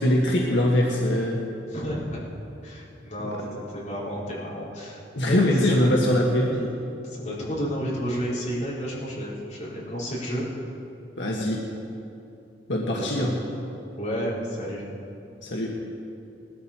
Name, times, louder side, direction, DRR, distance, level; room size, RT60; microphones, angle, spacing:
voice 1, 0.0-1.4 3.2-3.6 5.1-6.7 11.2-11.6 12.7-13.3 15.4-15.7, left 1 dB, 80° left, -2 dB, 1.5 m, -23 dB
voice 2, 1.7-2.2 2.6-3.4 3.7-5.9 7.0-10.4 12.9-13.4 14.0-14.8, equal, 40° left, -7 dB, 4.3 m, -31 dB
19.0 x 13.0 x 4.4 m, 2.7 s
head